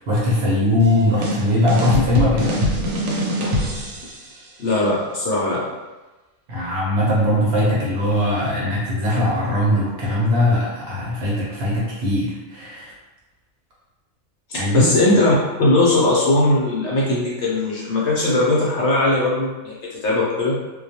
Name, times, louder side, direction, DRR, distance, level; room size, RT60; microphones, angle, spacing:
voice 1, 0.1-2.6 6.5-12.9 14.5-14.9, left 1 dB, 60° right, -7 dB, 0.9 m, -20 dB
sound 1, 0.8-4.3, equal, 85° right, 1.0 m, -23 dB
voice 2, 4.6-5.6 14.5-20.6, left 2 dB, 65° left, -6 dB, 0.8 m, -19 dB
2.3 x 2.2 x 2.7 m, 1.1 s
omnidirectional pair, 1.4 m